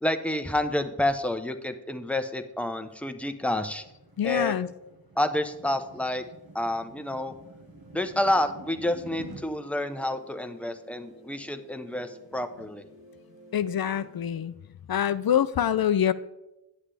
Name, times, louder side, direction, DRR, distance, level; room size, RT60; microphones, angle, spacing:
voice 1, 0.0-3.8 4.2-4.6 5.2-6.2 6.5-7.3 7.9-12.8, left 1 dB, 5° left, 7 dB, 0.7 m, -29 dB
sound 1, 3.0-9.4, right 1 dB, 55° right, 1.5 m, -48 dB
voice 2, 4.2-4.7 13.5-14.5 14.9-16.1, left 9 dB, 55° left, 15 dB, 0.5 m, -25 dB
sound 2, 5.5-14.2, right 3 dB, 75° right, 3.2 m, -55 dB
10.0 x 7.3 x 3.4 m, 0.95 s
cardioid pair, 45°, 44 cm